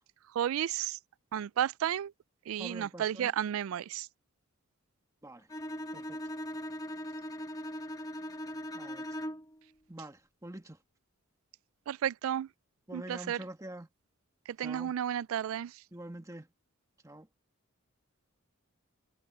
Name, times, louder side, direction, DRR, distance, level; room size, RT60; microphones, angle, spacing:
voice 1, 0.4-1.0 1.3-2.1 2.5-4.1 11.9-12.5 12.9-13.4 14.6-15.7, right 10 dB, 75° right, 0.3 m, -32 dB
voice 2, 2.6-3.3 5.2-5.5 5.9-6.2 8.7-9.2 9.9-10.8 12.9-13.9 14.6-14.9 15.9-16.5 17.0-17.3, right 1 dB, 15° right, 1.4 m, -46 dB
Bowed string instrument, 5.5-9.6, equal, 15° left, 1.3 m, -39 dB
head